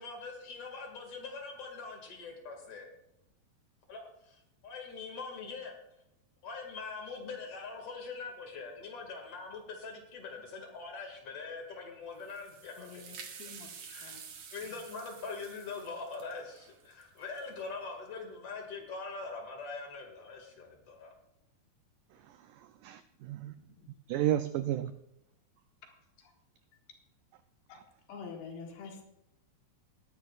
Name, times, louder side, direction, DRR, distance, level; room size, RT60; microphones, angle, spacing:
voice 1, 0.0-2.9 3.9-5.7 6.4-13.0 13.9-14.1 14.5-21.1, left 4 dB, 45° left, 2.7 m, -43 dB
sound 1, 12.1-17.7, right 6 dB, 60° right, 1.9 m, -50 dB
voice 2, 12.8-13.7 14.0-14.2 14.6-14.8 23.8-23.9 26.2-26.3 27.7-27.8 28.1-29.0, left 5 dB, 85° left, 3.7 m, -47 dB
voice 3, 22.3-23.5 24.1-24.9, right 12 dB, 90° right, 1.8 m, -33 dB
20.5 x 10.5 x 2.4 m
omnidirectional pair, 4.4 m